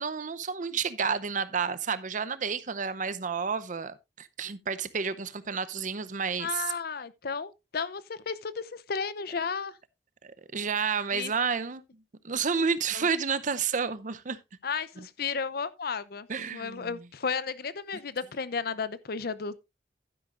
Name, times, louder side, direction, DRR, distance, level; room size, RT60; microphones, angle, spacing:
voice 1, 0.0-6.6 10.2-11.8 12.2-14.4 15.0-15.1 16.3-16.9, right 5 dB, 45° right, 0.7 m, -30 dB
voice 2, 6.4-9.8 11.1-11.3 12.9-13.1 14.6-19.6, left 5 dB, 60° left, 0.7 m, -33 dB
11.5 x 10.0 x 2.5 m
head